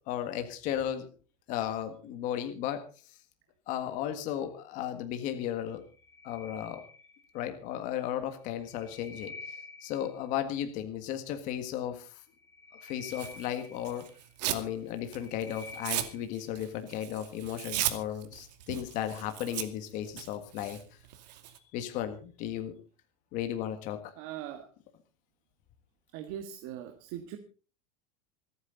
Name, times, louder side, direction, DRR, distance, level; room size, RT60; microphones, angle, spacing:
voice 1, 0.1-1.1 1.5-2.8 3.7-5.8 6.2-6.8 7.3-9.3 9.8-12.2 12.8-14.0 14.5-20.8 21.7-22.7 23.3-24.1, left 10 dB, 40° left, 7 dB, 1.7 m, -35 dB
sound 1, 5.8-7.5 8.5-10.3 12.3-14.4 14.9-16.4, left 3 dB, 15° left, 3.3 m, -49 dB
Tearing, 13.1-14.7 15.0-21.6, right 13 dB, 90° right, 2.5 m, -37 dB
voice 2, 24.2-24.6 26.1-27.4, right 11 dB, 45° right, 6 dB, 1.7 m, -40 dB
27.5 x 9.6 x 4.0 m, 0.36 s
supercardioid pair, 175°, 21 cm